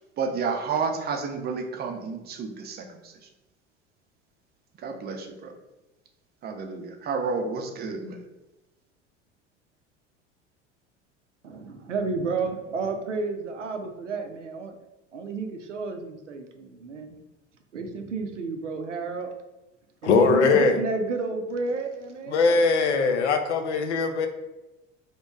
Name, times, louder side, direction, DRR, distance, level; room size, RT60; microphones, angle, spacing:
voice 1, 0.2-3.1 4.8-5.5 6.4-8.2, right 5 dB, 25° right, 4 dB, 0.5 m, -30 dB
voice 2, 11.4-14.7 15.1-17.1 17.7-19.3 20.0-22.6, right 4 dB, 85° right, 5 dB, 0.5 m, -31 dB
voice 3, 20.0-20.8 22.3-24.3, left 4 dB, 70° left, 7 dB, 0.5 m, -21 dB
2.9 x 2.2 x 3.5 m, 1.0 s
figure-of-eight pair, 70°, 36 cm